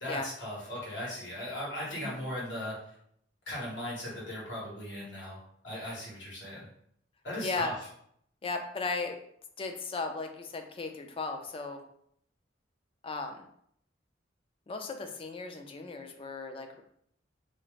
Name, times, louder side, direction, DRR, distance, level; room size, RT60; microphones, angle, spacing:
voice 1, 0.0-2.9 3.5-5.4 5.6-6.6 7.2-7.7, left 1 dB, 75° left, -6 dB, 1.4 m, -38 dB
voice 2, 7.4-7.7 8.4-9.2 9.6-11.8 13.0-13.4 14.7-16.8, left 3 dB, 30° left, 6 dB, 0.4 m, -36 dB
2.7 x 2.4 x 3.1 m, 0.69 s
head